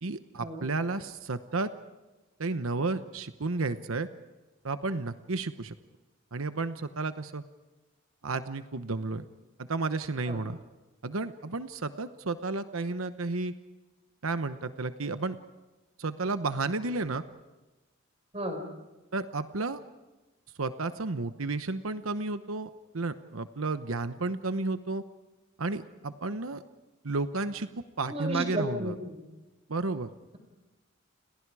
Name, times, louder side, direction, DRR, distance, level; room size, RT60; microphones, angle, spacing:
voice 1, 0.0-1.7 2.4-4.1 4.6-5.7 6.3-7.4 8.2-9.2 9.7-10.6 11.0-13.5 14.2-15.4 16.0-17.2 19.1-19.8 20.6-25.0 25.6-26.6 27.0-27.7 28.0-28.9 29.7-30.1, right 3 dB, 85° right, 10 dB, 1.0 m, -32 dB
voice 2, 28.1-29.2, equal, 30° right, 6 dB, 5.0 m, -33 dB
30.0 x 30.0 x 4.9 m, 1.1 s
head